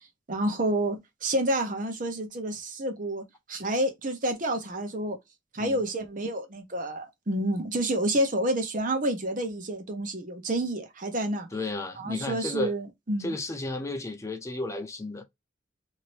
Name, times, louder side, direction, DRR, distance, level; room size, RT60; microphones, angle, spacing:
voice 1, 0.3-5.2 5.5-11.5 12.0-13.3, right 1 dB, 45° right, 0.8 m, -29 dB
voice 2, 11.5-12.8 13.2-15.2, left 2 dB, 15° left, 0.4 m, -33 dB
2.8 x 2.7 x 3.0 m
head